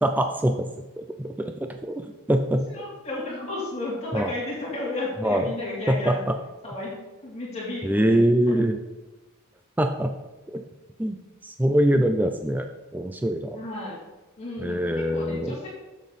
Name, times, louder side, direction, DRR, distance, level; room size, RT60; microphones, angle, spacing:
voice 1, 0.0-2.6 4.1-4.3 5.2-5.5 5.9-6.4 7.8-8.8 9.8-10.1 10.5-10.6 11.0-11.2 11.4-12.7 12.9-13.6 14.6-15.6, right 1 dB, 10° right, 6 dB, 0.4 m, -24 dB
voice 2, 2.7-6.2 6.6-8.2 13.5-14.0 14.4-15.7, left 2 dB, 30° left, -6 dB, 2.7 m, -33 dB
7.4 x 7.3 x 4.0 m, 1.1 s
head